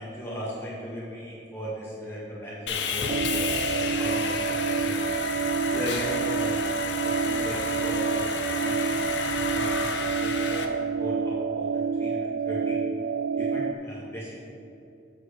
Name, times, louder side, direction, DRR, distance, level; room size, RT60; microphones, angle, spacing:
voice 1, 0.0-5.0 5.7-6.6 7.0-8.9 9.4-12.8 13.4-14.4, equal, 15° left, -7 dB, 1.8 m, -37 dB
Sawing, 2.7-10.6, left 5 dB, 85° left, 0.8 m, -31 dB
sound 1, 3.1-13.7, right 5 dB, 75° right, 0.3 m, -28 dB
7.6 x 4.6 x 6.7 m, 2.7 s
head